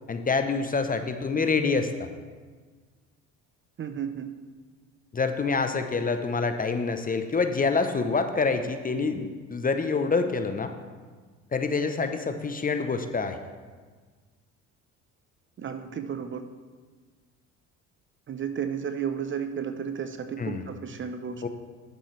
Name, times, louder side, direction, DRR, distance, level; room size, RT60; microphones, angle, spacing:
voice 1, 0.1-1.9 5.1-10.7 11.5-13.4 20.4-20.6 21.4-21.5, left 4 dB, 25° left, 8 dB, 0.7 m, -26 dB
voice 2, 3.8-4.3 15.6-16.4 18.3-21.5, right 7 dB, 35° right, 9 dB, 0.6 m, -33 dB
10.5 x 7.7 x 3.2 m, 1.5 s
supercardioid pair, 75°, 35 cm